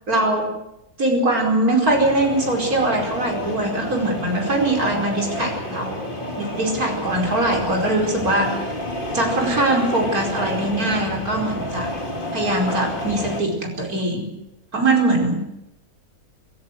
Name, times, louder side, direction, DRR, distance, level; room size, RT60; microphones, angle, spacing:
voice 1, 0.1-0.6 1.0-6.1 6.4-8.6 9.1-11.9 12.3-14.3 14.7-15.5, right 2 dB, 70° right, 1 dB, 5.4 m, -22 dB
sound 1, 1.8-13.4, left 1 dB, 35° left, 2.9 m, -30 dB
27.5 x 14.5 x 7.8 m, 0.86 s
omnidirectional pair, 1.6 m